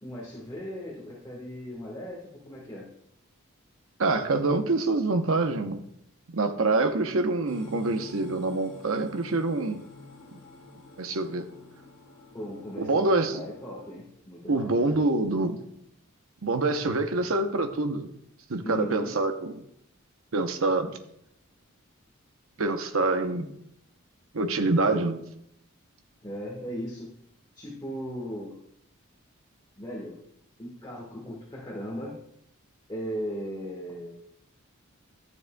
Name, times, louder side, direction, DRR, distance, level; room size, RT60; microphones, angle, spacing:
voice 1, 0.0-2.9 12.3-14.7 18.6-19.2 26.2-27.1 27.5-28.5 29.8-30.2 30.6-32.1 32.9-34.2, equal, 20° left, -3 dB, 1.3 m, -37 dB
voice 2, 4.0-5.8 6.3-9.8 11.0-11.5 12.8-13.4 14.5-15.6 16.4-18.1 18.5-19.5 20.3-21.0 22.6-23.5 24.3-25.2, right 2 dB, 65° right, 8 dB, 0.8 m, -26 dB
sound 1, 7.5-13.9, left 2 dB, 70° left, 1.5 m, -48 dB
12.0 x 7.2 x 2.2 m, 0.75 s
head